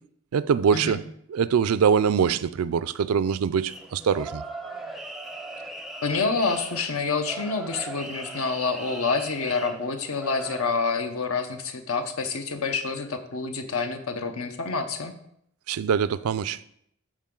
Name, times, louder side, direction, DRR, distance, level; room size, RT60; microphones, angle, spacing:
voice 1, 0.3-1.0 1.3-4.4 15.7-16.6, right 7 dB, 80° right, 0.4 m, -23 dB
sound 1, 3.7-10.6, right 2 dB, ahead, 0.5 m, -39 dB
voice 2, 6.0-15.1, left 4 dB, 80° left, 0.9 m, -28 dB
12.5 x 4.7 x 3.8 m
head